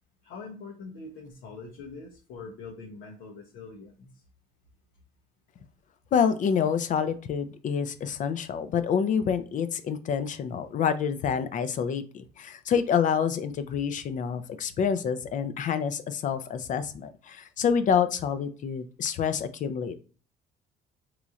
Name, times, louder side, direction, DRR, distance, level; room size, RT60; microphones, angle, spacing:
voice 1, 0.2-4.2, left 4 dB, 90° left, -1 dB, 0.7 m, -43 dB
voice 2, 6.1-20.0, left 7 dB, 50° left, 10 dB, 0.5 m, -27 dB
3.9 x 3.1 x 2.4 m, 0.38 s
cardioid pair, 110°, 17 cm